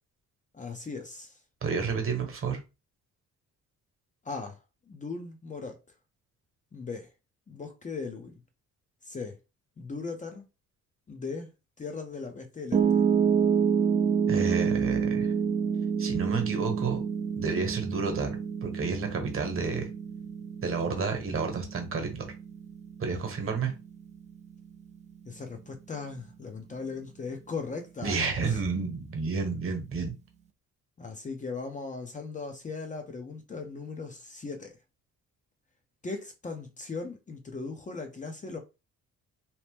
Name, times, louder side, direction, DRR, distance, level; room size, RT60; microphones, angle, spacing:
voice 1, 0.5-1.4 4.2-4.6 4.9-5.8 6.7-7.1 7.5-8.4 9.0-9.4 9.8-10.4 11.1-11.5 11.8-13.0 25.3-28.6 31.0-34.8 36.0-38.6, left 4 dB, 25° left, 0.6 m, -38 dB
voice 2, 1.6-2.6 14.3-15.3 16.0-17.0 17.4-19.9 20.6-22.3 23.0-23.7 28.0-30.1, right 4 dB, 45° right, 1.1 m, -30 dB
Piano, 12.7-24.9, right 7 dB, 25° right, 0.5 m, -28 dB
2.8 x 2.0 x 3.4 m
cardioid pair, 90°, 30 cm